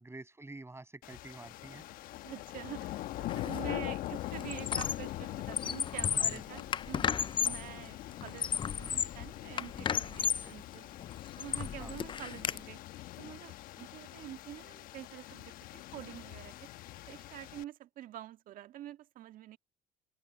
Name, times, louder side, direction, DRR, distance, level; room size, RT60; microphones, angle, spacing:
voice 1, 0.0-1.9 6.2-6.6 7.4-7.6 11.8-11.9, right 2 dB, 15° right, 6.5 m, -48 dB
sound 1, 1.0-17.6, left 15 dB, 75° left, 1.1 m, -43 dB
voice 2, 2.2-10.9 11.4-12.8 13.2-16.5 17.1-19.6, right 13 dB, 70° right, 1.7 m, -47 dB
Squeak, 3.3-3.6 3.9-5.1 5.4-7.7 8.2-9.2 9.6-10.5 11.0-12.6, left 7 dB, 35° left, 0.4 m, -33 dB
open air
supercardioid pair, 65°, 15 cm